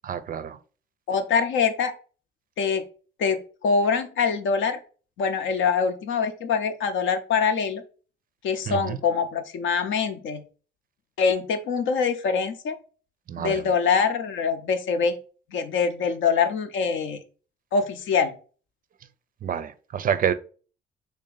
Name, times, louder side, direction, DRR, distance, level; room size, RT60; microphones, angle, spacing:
voice 1, 0.0-0.6 8.7-9.0 13.3-13.6 19.4-20.3, right 8 dB, 45° right, 0.4 m, -27 dB
voice 2, 1.1-1.9 2.6-2.8 3.2-4.8 5.2-7.8 8.4-10.4 11.2-12.8 13.4-15.2 15.5-17.2 17.7-18.3, left 5 dB, 75° left, 0.6 m, -24 dB
3.4 x 2.7 x 3.7 m
cardioid pair, 90°, 20 cm